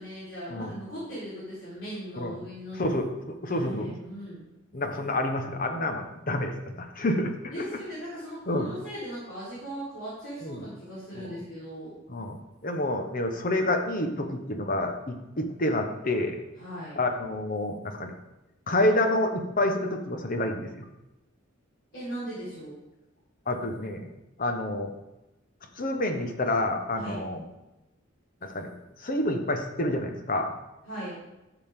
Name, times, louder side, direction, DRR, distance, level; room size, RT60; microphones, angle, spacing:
voice 1, 0.0-2.8 3.5-4.5 7.5-12.0 16.6-17.0 21.9-22.7 27.0-27.2 30.9-31.2, equal, 70° left, -11 dB, 4.2 m, -38 dB
voice 2, 2.8-3.9 4.7-7.8 8.5-8.7 10.4-10.6 11.1-11.3 12.1-12.4 12.6-16.4 17.0-18.1 18.7-20.8 23.5-24.1 24.4-24.9 25.8-27.4 28.4-28.7 29.0-30.5, left 1 dB, 45° left, 5 dB, 1.1 m, -28 dB
12.5 x 7.2 x 3.7 m, 0.97 s
head